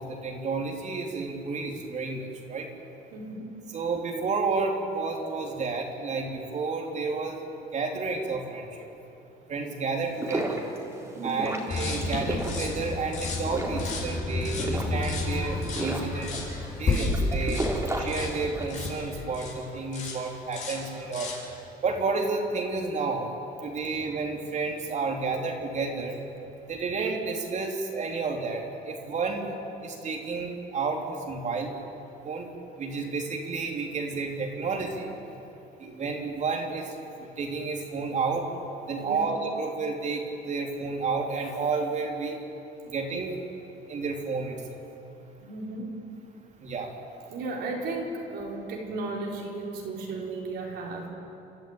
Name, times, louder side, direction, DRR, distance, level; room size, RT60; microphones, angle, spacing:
voice 1, 0.0-2.7 3.7-7.4 7.7-8.6 9.5-10.7 11.2-16.3 16.8-17.7 18.0-21.3 21.8-23.3 23.6-26.2 26.7-29.5 29.8-31.7 32.2-32.5 32.8-35.1 35.8-36.8 37.2-38.4 38.9-42.4 42.9-43.4 43.9-44.8 46.6-46.9, right 4 dB, 45° right, 2 dB, 3.4 m, -31 dB
voice 2, 3.1-3.5 11.1-11.6 39.0-39.3 45.4-45.9 47.3-51.1, right 3 dB, 75° right, -1 dB, 4.6 m, -35 dB
sound 1, 10.0-18.8, right 1 dB, 15° right, 3.6 m, -34 dB
sound 2, 11.7-19.6 19.9-20.2 20.5-21.5, left 2 dB, 45° left, 5.9 m, -31 dB
29.5 x 12.5 x 9.1 m, 2.9 s
cardioid pair, 110°, 17 cm